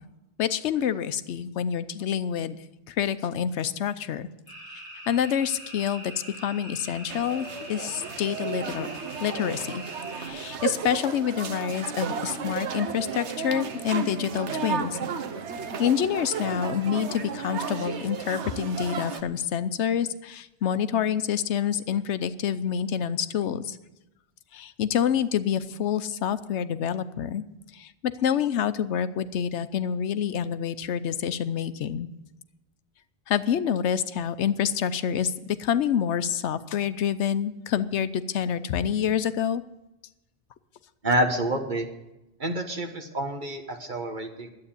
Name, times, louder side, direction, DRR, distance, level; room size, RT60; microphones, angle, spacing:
voice 1, 0.4-2.6 2.9-4.3 5.1-8.9 9.2-9.8 10.2-15.0 15.8-23.8 24.5-27.4 27.7-32.1 33.3-39.6, left 8 dB, 85° left, 13 dB, 1.0 m, -27 dB
sound 1, 4.5-10.3, right 1 dB, 20° right, 5.0 m, -43 dB
sound 2, 7.1-19.2, right 6 dB, 85° right, 1.2 m, -33 dB
voice 2, 41.0-41.9 42.4-44.5, right 1 dB, 45° right, 4 dB, 1.6 m, -28 dB
11.5 x 8.6 x 8.8 m, 0.96 s
omnidirectional pair, 1.1 m